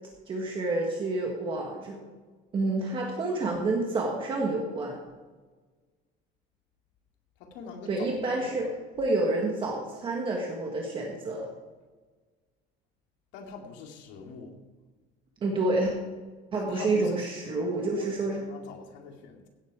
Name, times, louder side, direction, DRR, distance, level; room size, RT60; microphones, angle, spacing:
voice 1, 0.3-2.0 2.5-5.0 7.9-8.7 9.0-11.5 15.4-15.9 16.5-18.4, right 2 dB, 25° right, 0 dB, 1.6 m, -28 dB
voice 2, 7.4-8.7 13.3-14.5 16.5-19.5, left 5 dB, 70° left, 2 dB, 2.3 m, -43 dB
16.5 x 8.0 x 4.8 m, 1.4 s
cardioid pair, 165°, 19 cm